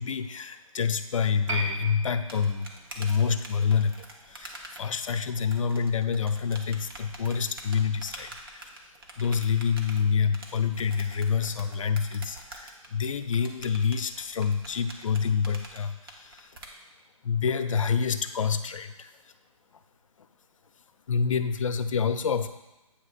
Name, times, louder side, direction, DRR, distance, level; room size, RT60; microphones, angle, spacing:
voice 1, 0.0-2.7 2.9-8.7 9.2-16.5 17.2-19.1 21.1-22.5, left 6 dB, 65° left, 10 dB, 0.5 m, -27 dB
Piano, 1.5-8.4 8.7-8.8, right 2 dB, 60° right, 1.7 m, -41 dB
sound 1, 1.7-16.7, right 2 dB, 40° right, 1.0 m, -46 dB
8.4 x 3.0 x 5.6 m, 1.0 s
hypercardioid pair, 165°, 18 cm